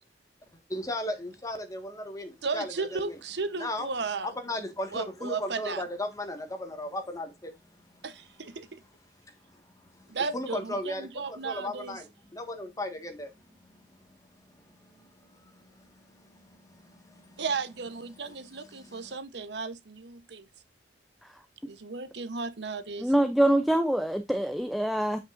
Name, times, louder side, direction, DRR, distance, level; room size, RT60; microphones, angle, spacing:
voice 1, 0.7-3.2 3.6-3.9 4.2-7.5 9.2-10.1 10.3-13.8 14.5-17.4 18.7-19.2, left 1 dB, 20° left, 1.5 m, -37 dB
voice 2, 2.4-4.3 4.9-5.8 8.0-8.7 10.1-12.0 17.4-20.5 21.7-23.1, right 4 dB, 70° right, 0.9 m, -35 dB
voice 3, 23.0-25.2, right 1 dB, ahead, 0.5 m, -24 dB
8.8 x 5.4 x 2.5 m
head